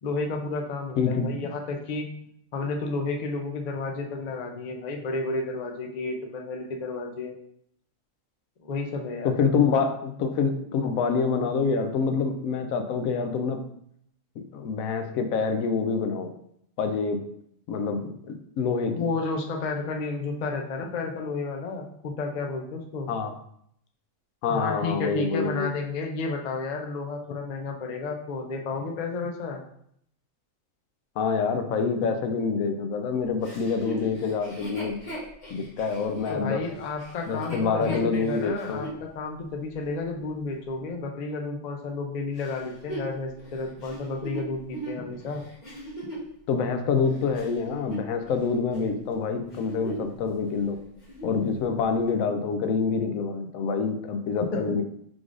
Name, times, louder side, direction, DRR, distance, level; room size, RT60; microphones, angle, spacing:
voice 1, 0.0-2.1 2.5-7.4 8.6-9.4 18.9-23.1 24.5-29.6 36.3-45.5 54.5-54.8, left 3 dB, 55° left, 2 dB, 0.4 m, -32 dB
voice 2, 1.0-1.3 9.2-13.6 14.4-16.3 16.8-17.2 17.7-19.0 23.1-23.4 24.4-25.7 31.2-35.0 35.5-36.6 37.3-38.9 46.5-50.8 51.2-54.8, left 5 dB, 85° left, 7 dB, 1.0 m, -26 dB
Chuckle chortle, 33.4-39.0 39.6-39.7 42.4-46.3 46.9-48.4 48.7-49.0 49.4-50.2 50.5-50.6 50.9-51.4 52.1-52.2, right 1 dB, 35° left, 1.2 m, -38 dB
4.8 x 3.8 x 2.5 m, 0.71 s
omnidirectional pair, 1.4 m